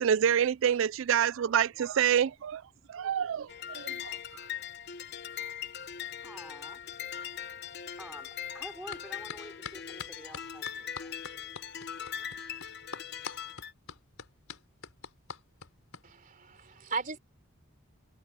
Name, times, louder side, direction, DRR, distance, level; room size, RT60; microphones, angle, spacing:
voice 1, 0.0-2.6 2.9-3.9, right 8 dB, 65° right, 0.3 m, -27 dB
sound 1, 3.5-13.7, left 9 dB, 50° left, 1.1 m, -40 dB
voice 2, 6.2-6.8 8.0-11.2, equal, 5° right, 4.7 m, -48 dB
sound 2, 8.9-9.0 9.3-16.0, left 6 dB, 80° left, 3.8 m, -43 dB
voice 3, 16.0-17.2, right 4 dB, 40° right, 3.6 m, -37 dB
head